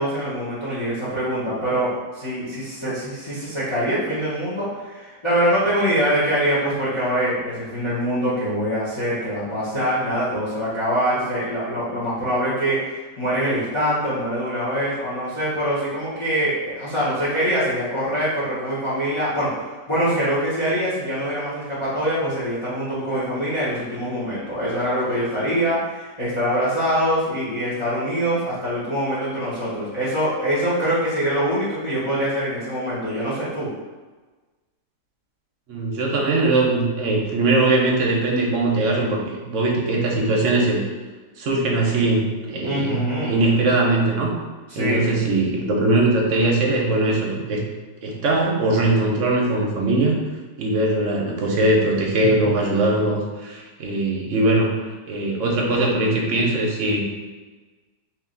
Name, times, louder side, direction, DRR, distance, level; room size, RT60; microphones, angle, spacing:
voice 1, 0.0-33.7 42.6-43.4 44.7-45.1, equal, 25° left, -9 dB, 0.7 m, -24 dB
voice 2, 35.7-40.8 41.4-44.3 44.8-47.6 48.0-50.2 50.6-57.0, right 2 dB, 60° right, -1 dB, 0.9 m, -21 dB
2.9 x 2.9 x 3.7 m, 1.3 s
omnidirectional pair, 1.7 m